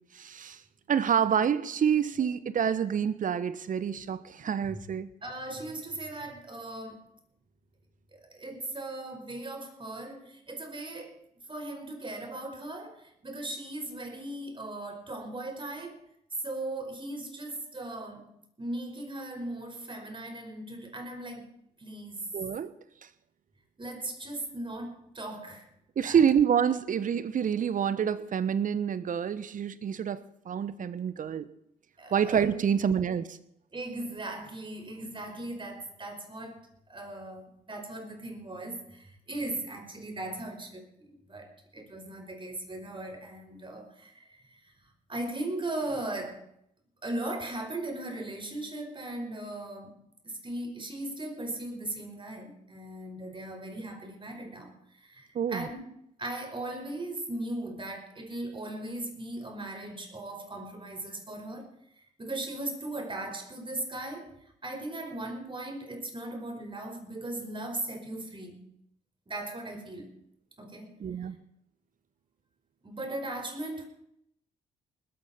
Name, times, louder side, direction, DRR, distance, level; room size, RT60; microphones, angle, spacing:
voice 1, 0.1-0.6 0.9-5.1 22.3-22.7 26.0-31.5 32.1-33.4 55.3-55.7 71.0-71.4, right 8 dB, 45° right, 1.1 m, -27 dB
voice 2, 5.2-7.0 8.1-11.2 11.5-16.0 16.4-18.3 18.6-21.5 21.8-22.3 23.8-25.7 26.0-26.2 32.0-32.6 33.7-36.6 36.9-44.6 45.1-46.5 47.0-49.9 50.2-55.8 56.2-61.7 62.2-64.3 64.6-68.7 69.3-70.1 70.6-71.0 72.8-73.9, right 1 dB, 25° right, 5.0 m, -38 dB
20.5 x 14.0 x 4.4 m
figure-of-eight pair, 45°, 19 cm